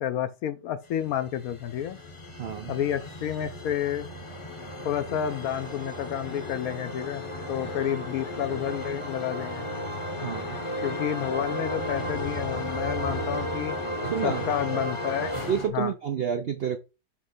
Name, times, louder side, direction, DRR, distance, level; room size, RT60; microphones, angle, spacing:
voice 1, 0.0-2.0 2.7-4.1 4.8-9.7 10.8-13.7 14.2-15.3 15.7-15.9, left 10 dB, 70° left, 0.9 m, -30 dB
sound 1, 1.0-15.7, left 1 dB, 25° left, 0.7 m, -34 dB
voice 2, 2.4-2.8 10.2-10.6 14.0-14.4 15.5-16.8, right 8 dB, 75° right, 0.5 m, -29 dB
6.5 x 3.2 x 5.2 m
omnidirectional pair, 1.8 m